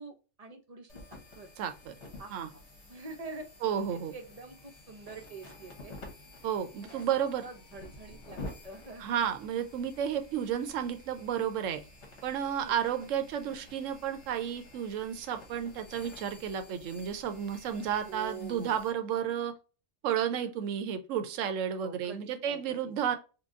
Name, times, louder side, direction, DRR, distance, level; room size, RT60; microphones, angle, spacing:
voice 1, 0.0-1.5 2.2-2.5 2.9-3.5 3.9-5.9 6.8-9.2 12.6-12.7 18.0-18.8 21.7-23.2, right 3 dB, 40° right, 0.6 m, -46 dB
sound 1, 0.9-18.9, left 2 dB, 65° left, 1.4 m, -50 dB
voice 2, 1.6-2.0 2.3-2.5 3.6-4.1 6.4-7.5 9.0-11.8 12.2-19.5 20.0-23.2, right 9 dB, 85° right, 1.0 m, -32 dB
4.6 x 2.2 x 2.4 m
omnidirectional pair, 1.3 m